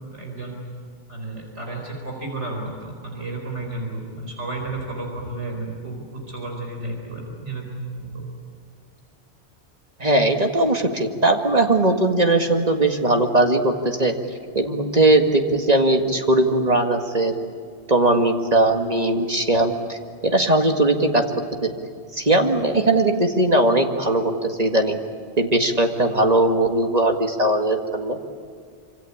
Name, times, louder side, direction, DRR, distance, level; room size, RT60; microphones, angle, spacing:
voice 1, 0.1-0.6 1.1-8.2, right 2 dB, 85° right, 1 dB, 4.9 m, -32 dB
voice 2, 10.0-14.1 14.5-17.3 17.9-21.2 21.6-21.7 22.1-25.0 25.4-28.2, right 2 dB, 35° right, 4 dB, 2.1 m, -19 dB
26.0 x 26.0 x 8.7 m, 2.1 s
omnidirectional pair, 1.2 m